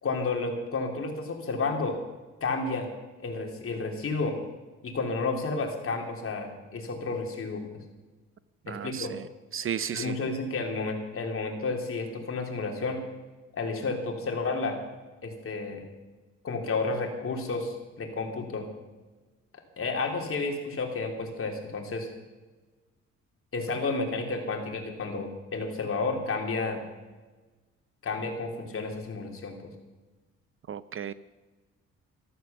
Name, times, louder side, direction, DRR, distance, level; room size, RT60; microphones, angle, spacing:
voice 1, 0.0-2.0 2.4-2.9 3.2-4.4 4.8-7.6 8.7-9.1 9.9-13.0 13.5-14.8 15.2-15.8 16.4-18.7 19.8-22.1 23.5-26.8 28.0-29.7, left 3 dB, 45° left, 2 dB, 3.4 m, -31 dB
voice 2, 8.7-10.2 30.7-31.1, right 8 dB, 45° right, 16 dB, 0.6 m, -34 dB
14.0 x 13.0 x 7.1 m, 1.2 s
cardioid pair, 90°, 30 cm